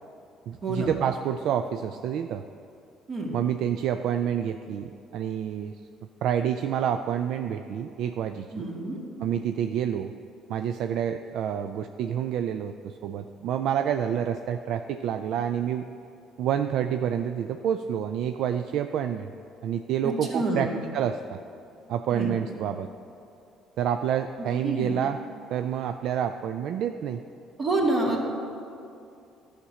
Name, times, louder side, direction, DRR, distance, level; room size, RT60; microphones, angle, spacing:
voice 1, 0.5-2.4 3.3-5.8 6.2-8.7 9.2-10.1 10.5-15.9 16.4-19.3 19.6-21.4 21.9-22.9 23.8-25.2 25.5-27.2, right 9 dB, 70° right, 8 dB, 0.3 m, -28 dB
voice 2, 8.5-9.0 20.0-20.7 22.1-22.3 24.6-24.9 27.6-28.3, right 2 dB, 45° right, -1 dB, 2.2 m, -27 dB
11.5 x 5.1 x 7.3 m, 2.6 s
supercardioid pair, 75°, 0 cm